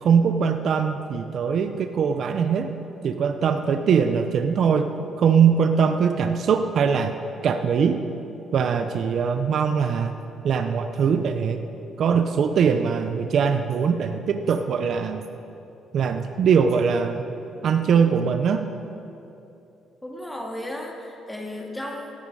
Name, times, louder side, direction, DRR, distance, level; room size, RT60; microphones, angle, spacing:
voice 1, 0.0-2.7 3.0-7.1 7.4-8.0 8.5-11.7 12.0-15.2 15.9-17.2 17.6-18.7, right 6 dB, 55° right, 8 dB, 0.6 m, -22 dB
voice 2, 20.0-22.1, left 1 dB, 10° left, 0 dB, 1.9 m, -34 dB
17.5 x 9.3 x 4.8 m, 2.8 s
cardioid pair, 115°, 0 cm